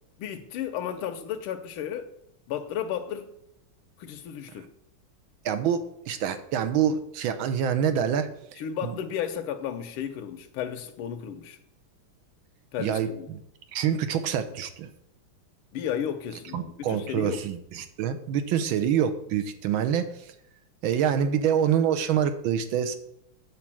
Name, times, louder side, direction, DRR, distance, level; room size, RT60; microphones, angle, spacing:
voice 1, 0.2-2.1 2.5-3.3 4.0-4.7 8.6-11.6 12.7-13.3 15.7-17.4, left 9 dB, 85° left, 1.6 m, -33 dB
voice 2, 5.4-8.9 12.8-13.4 13.7-14.9 16.5-20.1 20.8-23.0, right 8 dB, 75° right, 1.6 m, -26 dB
8.7 x 4.6 x 7.4 m
omnidirectional pair, 2.3 m